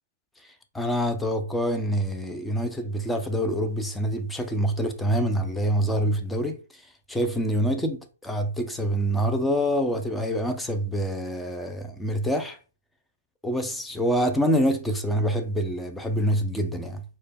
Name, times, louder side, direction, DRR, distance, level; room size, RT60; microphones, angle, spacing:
voice 1, 0.7-6.6 7.1-12.6 13.4-17.0, equal, 5° left, 0.4 m, -26 dB
4.2 x 2.2 x 3.4 m
hypercardioid pair, 160°, 0 cm